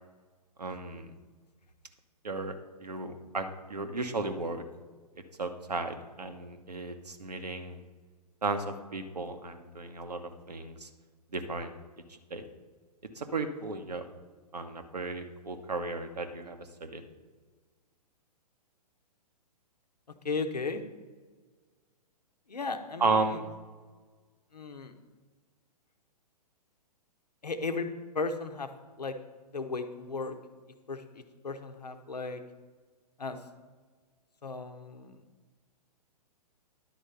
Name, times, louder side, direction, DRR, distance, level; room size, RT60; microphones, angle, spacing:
voice 1, 0.6-1.1 2.2-2.5 2.8-4.6 5.4-7.8 8.4-10.2 10.5-10.9 11.3-11.7 12.3-12.4 13.1-14.0 14.5-17.0 23.0-23.5, right 3 dB, 70° right, 7 dB, 1.0 m, -34 dB
voice 2, 20.2-20.8 22.5-23.4 24.5-24.9 27.4-27.9 28.1-28.7 29.0-29.1 29.5-30.4 30.9-31.0 31.4-32.4 33.2-33.4 34.4-35.2, left 4 dB, 75° left, 8 dB, 0.9 m, -35 dB
10.5 x 4.4 x 6.5 m, 1.4 s
figure-of-eight pair, 115°, 21 cm